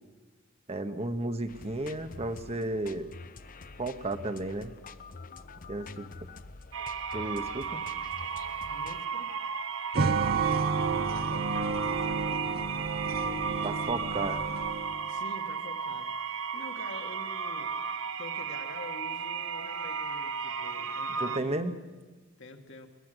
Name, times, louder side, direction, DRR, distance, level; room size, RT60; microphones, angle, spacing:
voice 1, 0.7-3.1 3.8-4.7 5.7-6.1 7.1-7.8 13.6-14.4 21.2-21.7, right 2 dB, 30° right, 8 dB, 1.1 m, -33 dB
sound 1, 1.5-9.0, left 4 dB, 40° left, 0.8 m, -47 dB
sound 2, 6.7-21.4, right 6 dB, 70° right, 1.0 m, -34 dB
voice 2, 8.7-9.3 11.1-13.7 15.1-17.8 18.2-21.7 22.4-22.9, left 2 dB, 65° left, 4 dB, 2.0 m, -47 dB
sound 3, 9.9-15.1, right 4 dB, 50° right, 0.8 m, -31 dB
22.0 x 20.5 x 8.0 m, 1.3 s
head